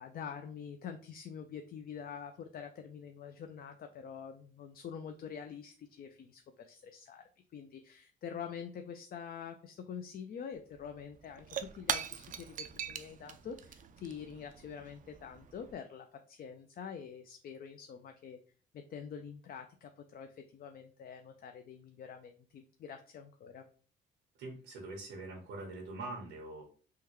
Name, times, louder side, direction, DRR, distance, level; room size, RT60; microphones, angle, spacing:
voice 1, 0.0-7.2 7.5-18.4 18.7-23.6, left 7 dB, 50° left, 6 dB, 0.4 m, -46 dB
Shatter / Crushing, 10.5-10.6 10.8-15.7, right 8 dB, 40° right, 0.4 m, -41 dB
voice 2, 24.4-26.6, right 2 dB, 90° right, -1 dB, 0.9 m, -43 dB
3.6 x 2.2 x 3.0 m, 0.41 s
cardioid pair, 90°, 20 cm